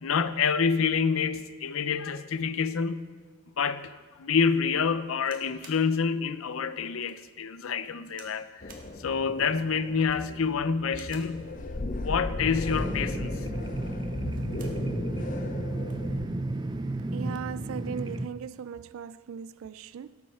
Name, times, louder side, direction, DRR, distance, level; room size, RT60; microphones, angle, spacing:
voice 1, 0.0-3.1 3.6-8.6 9.0-11.5 12.0-13.5, left 5 dB, 90° left, 0.6 m, -27 dB
sound 1, 5.2-5.9 6.4-6.5 7.0-7.2 8.1-8.4 8.7-8.9 9.9-10.3 10.9-11.4 12.6-13.0 14.1-14.8 15.2-15.3 15.6-16.1 16.9-17.2, right 4 dB, 40° right, 1.6 m, -52 dB
sound 2, 8.6-16.3, left 2 dB, 40° left, 0.6 m, -36 dB
sound 3, 12.7-18.3, right 2 dB, 20° right, 0.4 m, -33 dB
voice 2, 17.1-20.2, right 7 dB, 85° right, 0.3 m, -38 dB
17.5 x 7.7 x 4.4 m
head